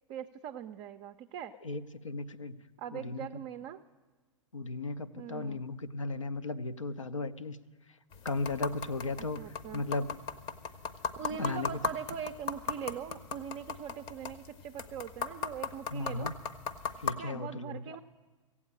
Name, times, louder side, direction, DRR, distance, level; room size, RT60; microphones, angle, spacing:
voice 1, 0.1-1.6 2.8-3.8 5.2-5.6 9.2-9.8 11.2-16.3 17.2-18.0, right 8 dB, 35° right, 7 dB, 0.4 m, -41 dB
voice 2, 1.6-2.6 2.9-3.3 4.5-7.6 8.2-10.2 11.4-11.7 15.9-16.3 17.0-18.0, left 3 dB, 80° left, 11 dB, 0.6 m, -36 dB
sound 1, 8.1-17.1, left 6 dB, 30° left, 0.7 m, -39 dB
15.5 x 8.4 x 8.6 m, 1.3 s
figure-of-eight pair, 95°, 16 cm